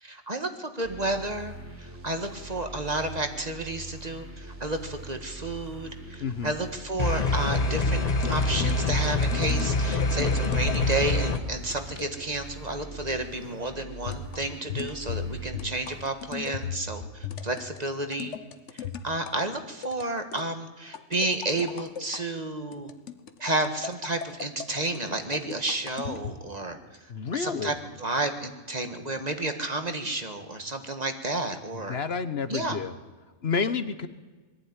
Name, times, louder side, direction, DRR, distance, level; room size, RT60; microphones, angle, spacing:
voice 1, 0.0-1.5 1.8-8.0 8.3-18.3 19.0-22.9 23.4-26.8 27.3-32.0 32.5-32.8, right 2 dB, 35° right, 7 dB, 1.7 m, -31 dB
sound 1, 0.8-16.4, right 1 dB, 80° right, 4.2 m, -43 dB
voice 2, 6.2-6.5 27.1-27.7 31.9-32.9 33.4-34.1, left 5 dB, 60° left, 11 dB, 1.3 m, -29 dB
sound 2, 7.0-11.4, left 2 dB, 35° left, 1.4 m, -25 dB
sound 3, 7.8-11.1 11.7-12.1 14.1-19.4 19.8-20.5 20.9-22.2 22.7-26.4, left 7 dB, 85° left, 1.4 m, -37 dB
21.0 x 15.0 x 9.7 m, 1.3 s
omnidirectional pair, 1.2 m